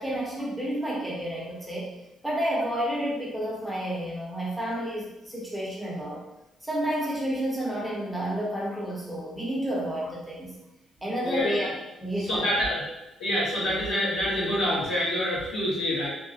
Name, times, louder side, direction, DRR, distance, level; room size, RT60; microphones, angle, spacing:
voice 1, 0.0-1.9 2.2-6.2 6.6-10.5 11.0-11.7 12.0-12.6, equal, 5° right, -5 dB, 0.8 m, -30 dB
voice 2, 11.2-11.7 12.2-12.8 13.2-16.1, left 1 dB, 75° left, -8 dB, 1.2 m, -26 dB
2.8 x 2.2 x 2.7 m, 0.96 s
cardioid pair, 90°, 0 cm